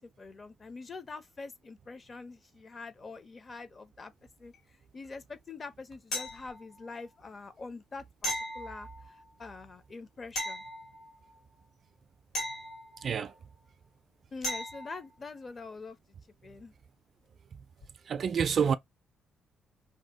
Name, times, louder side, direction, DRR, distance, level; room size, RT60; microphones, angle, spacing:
voice 1, 0.2-4.1 4.4-4.5 4.9-10.6 14.3-16.0 16.4-16.7, left 4 dB, 35° left, 0.6 m, -45 dB
sound 1, 6.1-6.9 8.2-9.3 10.4-11.4 12.3-13.4 14.4-15.1 17.8-17.9, equal, 70° left, 1.6 m, -37 dB
voice 2, 13.0-13.3 18.1-18.8, right 7 dB, 55° right, 0.3 m, -27 dB
2.8 x 2.1 x 3.4 m
cardioid pair, 90°, 0 cm